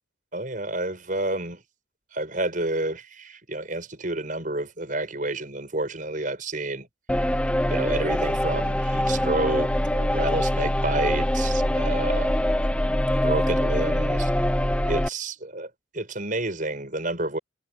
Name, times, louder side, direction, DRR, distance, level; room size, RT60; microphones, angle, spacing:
voice 1, 0.3-1.6 2.1-6.9 7.6-12.3 13.2-14.3 14.9-17.4, right 2 dB, 45° right, 6.2 m, -29 dB
sound 1, 7.1-15.1, left 1 dB, 5° left, 0.7 m, -24 dB
head